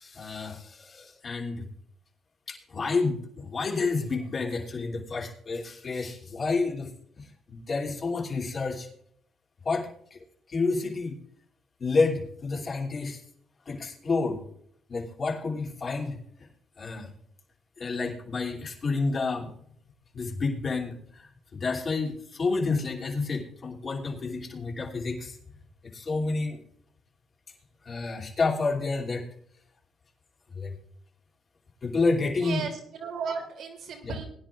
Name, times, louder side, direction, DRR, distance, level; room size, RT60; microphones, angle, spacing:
voice 1, 0.0-1.7 2.5-6.9 7.2-8.9 9.6-10.2 10.5-11.2 11.8-13.2 13.7-14.4 14.9-16.2 16.8-17.1 17.8-19.5 20.1-25.4 25.9-26.6 27.8-29.2 30.5-30.7 31.8-32.7 34.0-34.1, left 3 dB, 40° left, -1 dB, 3.0 m, -29 dB
voice 2, 32.3-34.3, right 5 dB, 75° right, 1 dB, 3.0 m, -35 dB
21.0 x 10.5 x 2.5 m, 0.66 s
cardioid pair, 90°, 0 cm